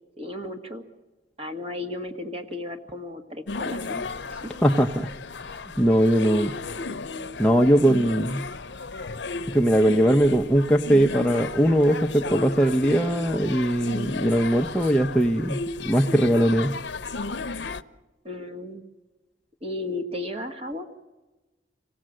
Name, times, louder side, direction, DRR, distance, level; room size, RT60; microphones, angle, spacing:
voice 1, 0.2-0.9 1.4-4.5 18.2-18.8 19.6-20.9, left 2 dB, 35° right, 6 dB, 1.8 m, -34 dB
sound 1, 3.5-17.8, left 3 dB, 75° left, 0.7 m, -34 dB
voice 2, 4.6-5.1 5.5-6.5 7.4-8.4 9.5-16.8, equal, 5° left, 0 dB, 0.7 m, -20 dB
27.0 x 17.5 x 7.7 m, 1.2 s
head